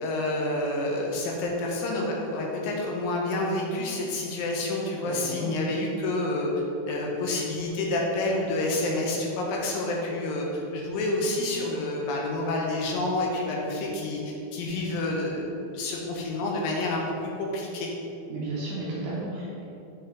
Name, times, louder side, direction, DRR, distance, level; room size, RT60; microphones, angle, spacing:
voice 1, 0.0-6.5 6.9-17.9, left 2 dB, 80° left, -1 dB, 2.3 m, -29 dB
voice 2, 18.3-19.6, right 2 dB, 75° right, -6 dB, 2.0 m, -33 dB
7.9 x 3.8 x 3.7 m, 2.9 s
omnidirectional pair, 4.3 m